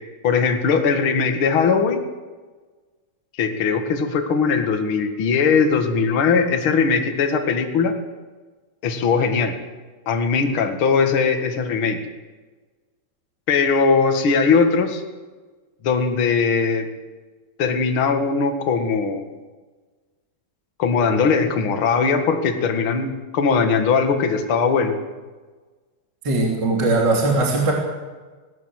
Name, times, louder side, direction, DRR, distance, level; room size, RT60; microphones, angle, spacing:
voice 1, 0.2-2.0 3.4-7.9 8.8-9.5 10.0-12.0 13.5-15.0 15.8-16.9 17.6-19.3 20.8-24.9, left 5 dB, 55° left, 5 dB, 1.5 m, -20 dB
voice 2, 26.2-27.7, right 2 dB, 25° right, -1 dB, 3.0 m, -19 dB
19.5 x 18.5 x 8.1 m, 1.3 s
omnidirectional pair, 5.4 m